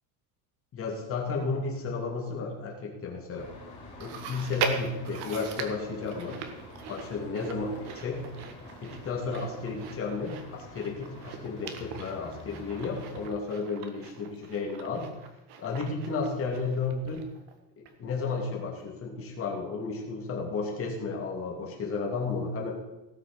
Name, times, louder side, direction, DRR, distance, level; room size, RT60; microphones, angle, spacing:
voice 1, 0.7-3.5 4.0-6.4 6.9-8.3 8.8-15.1 15.6-17.2 17.8-22.7, left 4 dB, 30° left, -1 dB, 2.9 m, -33 dB
sound 1, 3.3-13.3, left 1 dB, 15° left, 3.7 m, -47 dB
Chewing mastication, 4.0-17.5 17.9-18.0 18.8-18.9, right 6 dB, 60° right, 1.7 m, -40 dB
17.5 x 6.4 x 6.2 m, 0.99 s
cardioid pair, 170°, 44 cm